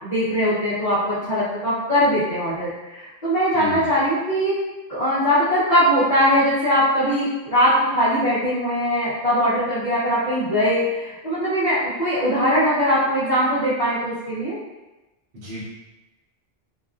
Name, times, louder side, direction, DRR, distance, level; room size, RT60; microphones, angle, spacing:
voice 1, 0.0-4.5 4.9-14.6, equal, 40° left, -15 dB, 0.9 m, -21 dB
voice 2, 3.5-3.9 15.3-15.6, left 2 dB, 55° right, -10 dB, 1.0 m, -34 dB
2.9 x 2.3 x 2.4 m, 1.1 s
omnidirectional pair, 1.2 m